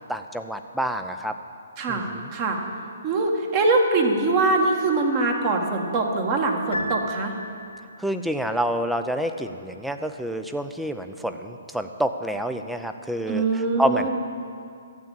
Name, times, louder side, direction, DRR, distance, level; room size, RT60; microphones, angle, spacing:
voice 1, 0.0-1.3 1.9-2.0 8.0-13.4 13.8-14.1, equal, ahead, 7 dB, 0.6 m, -27 dB
voice 2, 3.0-7.3 13.3-14.1, right 3 dB, 35° right, 2 dB, 1.8 m, -23 dB
Piano, 6.7-8.0, equal, 80° left, 0.9 m, -33 dB
12.5 x 8.3 x 8.2 m, 2.4 s
figure-of-eight pair, 135°, 0 cm